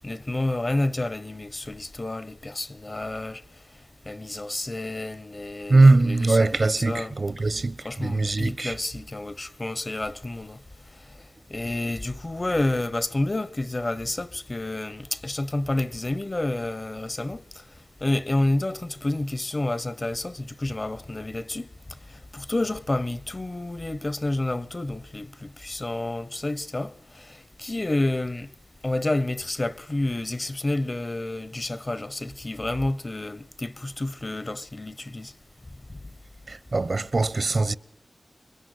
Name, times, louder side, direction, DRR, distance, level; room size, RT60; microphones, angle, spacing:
voice 1, 0.0-3.4 4.1-7.1 7.8-10.6 11.5-17.4 18.0-21.7 22.1-28.5 28.8-35.3, left 2 dB, 30° left, 1.0 m, -29 dB
voice 2, 5.7-8.7 36.5-37.7, right 3 dB, 50° right, 1.1 m, -21 dB
28.0 x 23.0 x 8.1 m
wide cardioid pair, 85°, 0 cm